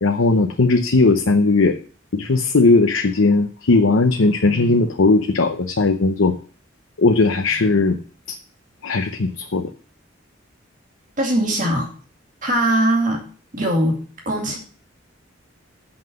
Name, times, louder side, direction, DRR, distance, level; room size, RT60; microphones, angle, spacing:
voice 1, 0.0-1.8 2.1-6.3 7.0-8.0 8.3-8.4 8.8-9.7, left 3 dB, 90° left, 5 dB, 0.8 m, -17 dB
voice 2, 11.2-11.9 12.4-13.2 13.5-14.6, right 1 dB, 40° right, 0 dB, 2.3 m, -20 dB
7.7 x 5.9 x 7.6 m, 0.43 s
head